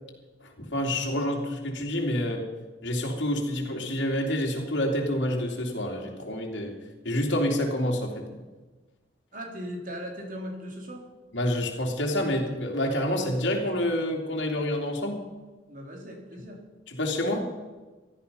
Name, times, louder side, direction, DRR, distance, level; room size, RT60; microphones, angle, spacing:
voice 1, 0.4-2.4 2.8-6.7 7.0-8.2 11.3-15.2 16.9-17.5, left 1 dB, 85° left, -1 dB, 2.9 m, -28 dB
voice 2, 9.3-11.0 15.7-16.6, equal, 45° right, 1 dB, 3.4 m, -38 dB
16.5 x 13.0 x 5.6 m, 1.2 s
head